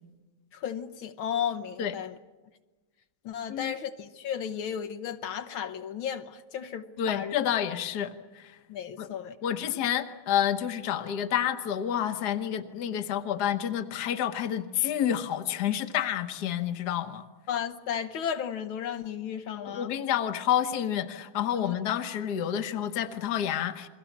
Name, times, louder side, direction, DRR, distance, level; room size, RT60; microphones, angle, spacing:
voice 1, 0.5-2.2 3.3-7.3 8.7-9.4 17.5-19.9 21.6-21.8, left 8 dB, 75° left, 1.8 m, -34 dB
voice 2, 7.0-8.6 9.0-9.1 9.4-17.2 19.7-23.9, left 10 dB, 55° left, 1.6 m, -29 dB
29.0 x 22.0 x 7.2 m
omnidirectional pair, 2.2 m